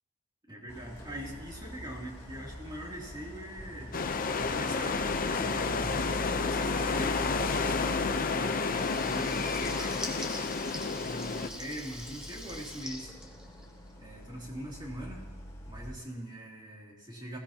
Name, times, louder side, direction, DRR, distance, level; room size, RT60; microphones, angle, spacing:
voice 1, 0.5-4.1 4.4-10.0 11.0-13.1 14.0-15.3 15.7-17.4, equal, 20° right, -3 dB, 2.9 m, -42 dB
Idling, 0.7-15.9, equal, 15° left, 4.1 m, -44 dB
sound 1, 3.9-11.5, left 4 dB, 40° left, 0.7 m, -30 dB
Water tap faucet / Liquid, 8.5-14.0, left 1 dB, 5° right, 1.4 m, -44 dB
20.5 x 16.0 x 2.9 m, 1.3 s
head